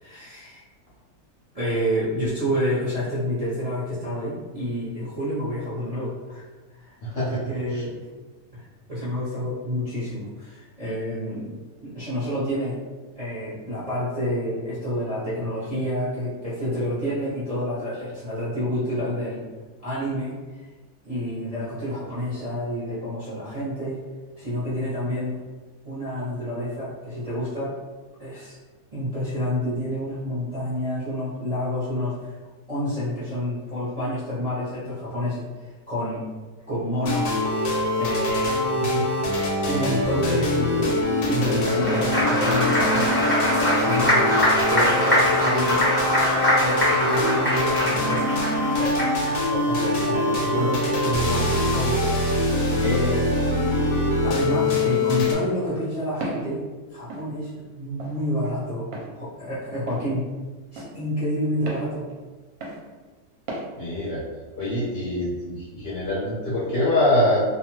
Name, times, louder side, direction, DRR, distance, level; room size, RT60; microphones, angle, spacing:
voice 1, 0.0-0.6 1.5-6.4 6.8-8.0 8.5-11.5 11.8-12.8 13.2-19.4 19.8-20.4 21.0-24.0 24.4-25.4 25.8-27.7 28.2-28.6 28.9-32.3 32.7-35.4 35.9-36.2 36.7-37.7 38.0-38.8 39.7-41.0 41.3-43.1 43.8-44.3 44.7-45.9 46.5-48.2 48.8-52.3 52.8-53.3 54.2-60.2 60.7-62.0, equal, 35° right, -11 dB, 0.6 m, -28 dB
voice 2, 7.0-7.4 7.7-7.8 38.8-39.0 52.6-53.0 63.8-64.2 64.6-67.4, left 1 dB, 55° left, -9 dB, 0.7 m, -24 dB
sound 1, 37.0-55.3, left 1 dB, 80° left, 1.1 m, -24 dB
Applause, 41.5-49.3, equal, 10° left, 0.6 m, -23 dB
Walk footsteps, 56.2-56.5 57.1-57.3 58.0-58.2 58.9-59.1 59.9-60.1 60.8-60.9 61.7-61.9 62.6-62.8 63.5-63.7, right 1 dB, 65° right, 0.9 m, -33 dB
2.6 x 2.2 x 2.9 m, 1.3 s
omnidirectional pair, 1.7 m